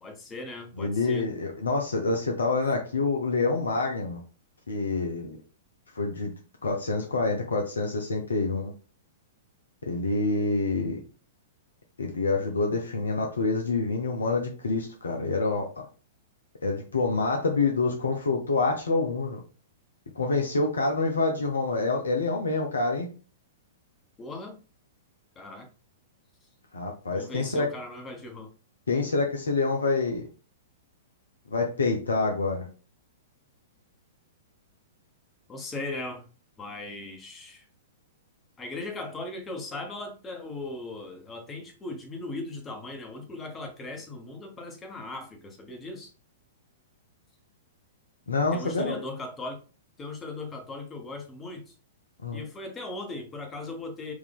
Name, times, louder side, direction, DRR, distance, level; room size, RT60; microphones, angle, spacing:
voice 1, 0.0-1.3 24.2-24.6 25.3-25.7 27.1-28.5 35.5-36.2 36.6-37.7 38.6-46.1 48.5-49.6 50.0-51.7 52.3-54.1, left 2 dB, 20° left, 4 dB, 1.2 m, -38 dB
voice 2, 0.8-4.2 4.7-5.4 5.9-6.3 6.6-8.7 9.9-11.0 12.0-15.9 16.6-19.4 20.1-23.1 26.7-27.7 28.9-30.2 31.5-32.7 48.3-48.9 52.2-52.4, left 3 dB, 75° left, 2 dB, 0.7 m, -27 dB
4.7 x 2.8 x 3.6 m, 0.36 s
figure-of-eight pair, 105°, 0 cm